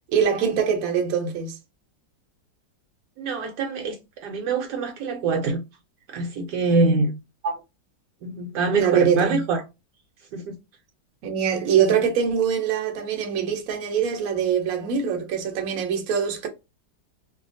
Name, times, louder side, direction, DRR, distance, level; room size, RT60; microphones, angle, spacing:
voice 1, 0.1-1.6 7.4-7.5 8.8-9.4 11.2-16.5, right 7 dB, 60° right, 1.1 m, -23 dB
voice 2, 3.2-4.0 4.2-5.6 6.1-7.1 8.2-9.6 10.3-10.6, right 3 dB, 75° right, 1.2 m, -24 dB
2.8 x 2.4 x 2.5 m
omnidirectional pair, 1.9 m